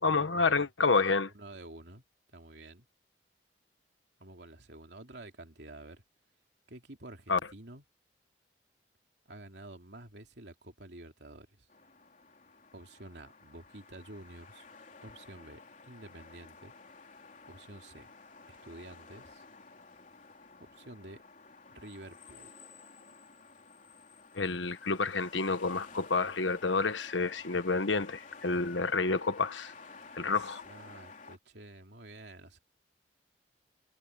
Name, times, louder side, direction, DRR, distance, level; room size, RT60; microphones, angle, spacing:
voice 1, 0.0-1.3 7.3-7.4 24.3-29.7 30.1-30.6, left 4 dB, 90° left, 1.3 m, -29 dB
voice 2, 1.3-2.0 2.3-2.9 4.2-6.0 6.7-7.8 9.3-11.7 12.7-14.7 15.0-16.7 17.5-18.1 18.5-19.4 20.6-21.2 21.7-22.5 30.2-32.6, right 1 dB, 65° right, 3.0 m, -50 dB
sound 1, 11.7-31.4, left 4 dB, 45° left, 3.8 m, -53 dB
head